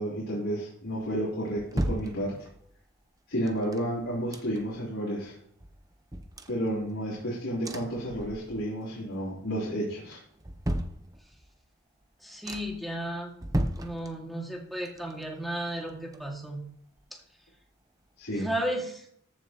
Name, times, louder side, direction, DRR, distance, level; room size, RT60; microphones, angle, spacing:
voice 1, 0.0-2.4 3.3-5.3 6.5-10.2 18.2-18.5, equal, 85° left, -6 dB, 3.4 m, -31 dB
sound 1, 1.0-2.8 3.5-4.9 5.2-5.3 5.6-7.2 7.6-8.8 9.1-9.6 10.1-11.6 12.0-12.1 12.4-12.9 13.3-14.6 14.8-16.7 17.0-17.1, right 1 dB, 20° right, 0.8 m, -36 dB
voice 2, 12.2-13.3 13.7-16.7 18.3-19.1, right 1 dB, ahead, -1 dB, 2.1 m, -34 dB
14.0 x 7.2 x 3.0 m, 0.68 s
head